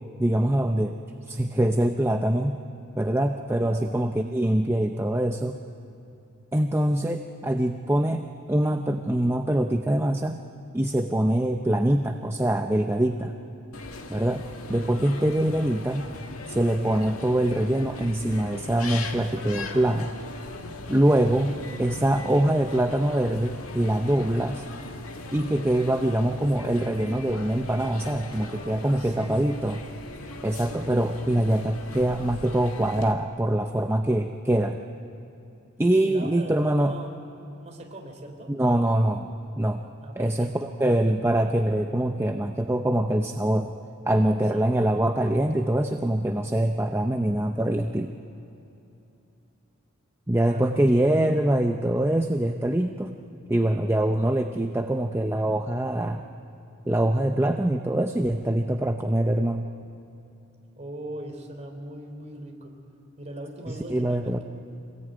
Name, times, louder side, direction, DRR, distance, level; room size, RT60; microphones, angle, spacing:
voice 1, 0.2-1.0 1.3-2.6 2.9-5.6 6.5-10.4 10.7-13.3 14.1-16.1 16.5-20.1 20.9-24.6 25.3-29.8 30.4-34.8 35.8-36.9 38.5-39.3 39.6-39.8 40.2-43.7 44.1-48.2 50.3-53.1 53.5-56.3 56.9-59.7 63.7-64.4, right 1 dB, 10° right, 5 dB, 0.6 m, -24 dB
voice 2, 3.6-3.9 21.4-22.5 29.0-29.5 36.0-37.2 37.6-38.5 40.0-41.0 44.5-44.6 50.5-51.1 60.8-62.8 63.2-64.4, right 1 dB, 30° right, 2 dB, 3.7 m, -41 dB
sound 1, 13.7-33.1, left 2 dB, 85° left, 1.9 m, -39 dB
25.5 x 19.5 x 9.3 m, 2.9 s
head